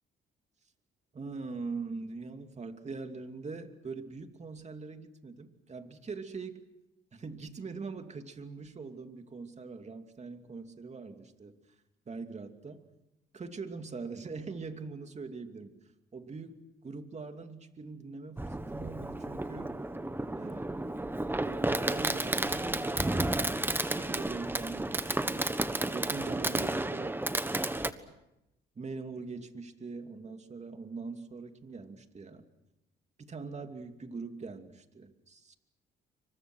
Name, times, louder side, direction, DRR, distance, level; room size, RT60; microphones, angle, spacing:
voice 1, 1.1-6.6 7.1-11.6 12.1-12.8 13.3-15.7 16.1-19.8 20.3-20.7 21.4-25.6 25.9-27.2 27.6-28.0 28.7-32.4 33.2-35.5, right 4 dB, 35° right, 6 dB, 2.7 m, -42 dB
Fireworks, 18.4-27.9, right 2 dB, 10° right, 1.4 m, -32 dB
28.0 x 25.0 x 6.3 m, 0.91 s
cardioid pair, 90°, 20 cm